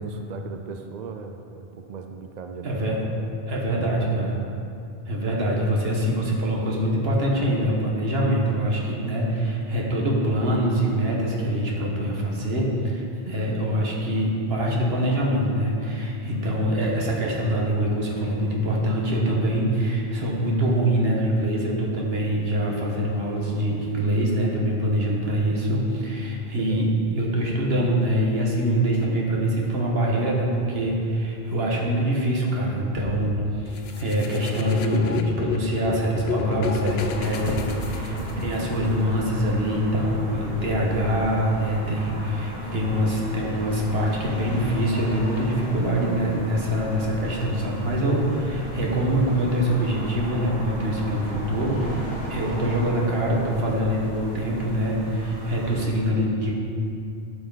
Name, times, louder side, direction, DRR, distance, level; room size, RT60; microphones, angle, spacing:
voice 1, 0.0-3.4 3.7-4.5 16.5-16.9 26.5-26.9 38.1-38.5 48.7-49.0, right 5 dB, 55° right, 5 dB, 0.6 m, -38 dB
voice 2, 2.6-3.0 3.5-4.3 5.1-38.1 38.4-51.9 52.3-56.5, right 1 dB, 75° right, -2 dB, 1.6 m, -24 dB
sound 1, 33.7-38.7, left 6 dB, 85° left, 0.8 m, -32 dB
sound 2, 36.7-55.9, equal, 20° right, 2.0 m, -36 dB
11.0 x 5.7 x 4.0 m, 2.5 s
omnidirectional pair, 1.0 m